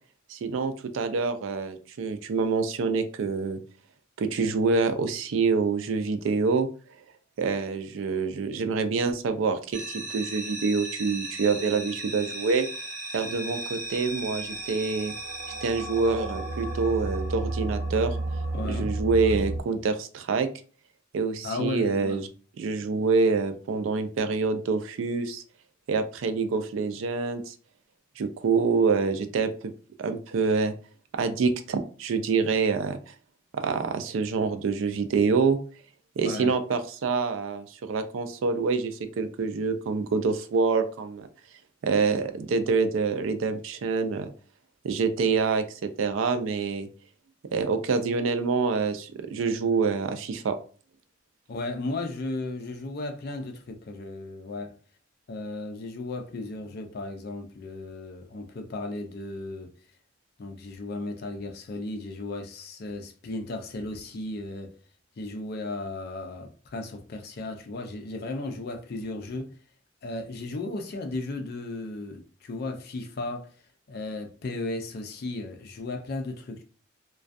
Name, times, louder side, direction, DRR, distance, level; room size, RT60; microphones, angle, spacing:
voice 1, 0.3-3.6 4.2-6.7 7.4-12.7 13.1-15.1 15.6-18.2 18.7-20.5 21.1-22.3 22.6-25.4 25.9-27.5 28.2-29.5 30.0-30.7 31.2-33.0 33.5-35.6 36.2-41.3 41.8-44.3 44.8-46.9 47.5-50.6, right 4 dB, 80° right, 0.3 m, -26 dB
sound 1, 9.7-19.6, right 2 dB, 40° right, 0.9 m, -33 dB
voice 2, 18.5-18.9 21.4-22.2 36.2-36.6 51.5-54.7 55.3-59.7 60.4-64.7 65.2-69.5 70.0-73.5 73.9-76.6, left 2 dB, 50° left, 0.4 m, -35 dB
2.3 x 2.2 x 2.5 m
head